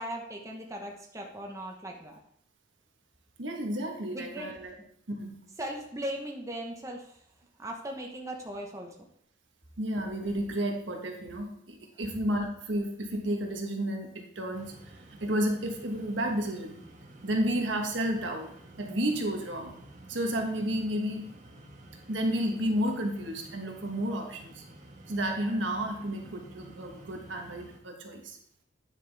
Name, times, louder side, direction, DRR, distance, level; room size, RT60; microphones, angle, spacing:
voice 1, 0.0-2.2 4.1-4.5 5.6-7.1 7.6-8.9, right 1 dB, 15° right, 0 dB, 1.0 m, -38 dB
voice 2, 3.4-4.7 5.1-5.4 9.8-14.8 15.2-16.8 17.2-18.5 18.8-19.7 20.1-21.3 22.1-24.6 25.1-28.4, equal, 80° right, 2 dB, 1.4 m, -31 dB
sound 1, 14.5-27.8, right 1 dB, 40° right, 1.4 m, -51 dB
9.4 x 5.9 x 3.4 m, 0.67 s
head